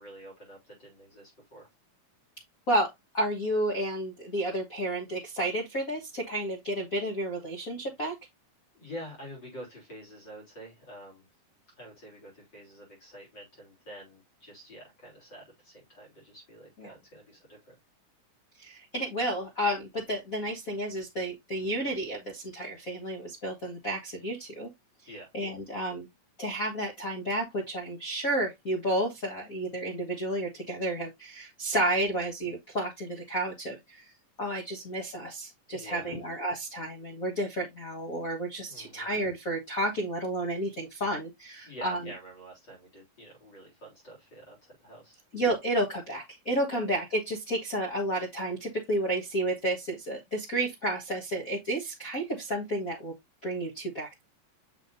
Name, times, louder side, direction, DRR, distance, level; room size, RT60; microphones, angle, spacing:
voice 1, 0.0-1.7 8.7-11.3 11.8-17.8 25.1-25.3 35.7-36.2 38.7-39.1 41.6-45.2 46.7-46.8, equal, 35° left, 3.9 m, -47 dB
voice 2, 3.1-8.1 16.8-16.9 18.6-24.7 25.3-26.1 26.4-34.1 34.4-42.0 45.3-53.1 53.4-54.2, right 1 dB, 70° left, 0.8 m, -31 dB
7.3 x 5.7 x 2.6 m
omnidirectional pair, 3.9 m